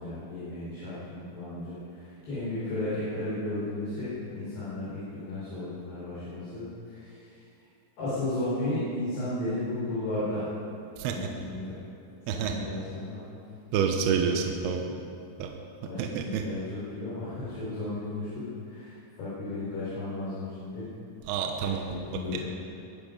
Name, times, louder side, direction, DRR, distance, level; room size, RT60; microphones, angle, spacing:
voice 1, 0.0-7.4 8.0-10.4 11.0-11.8 12.2-13.2 14.4-15.1 15.9-20.9 21.6-22.5, left 2 dB, 65° left, -11 dB, 6.8 m, -34 dB
voice 2, 13.7-14.8 15.4-15.5 16.0-16.4 21.3-21.8, right 7 dB, 75° right, 3 dB, 2.7 m, -27 dB
22.5 x 11.0 x 5.4 m, 2.7 s
omnidirectional pair, 5.1 m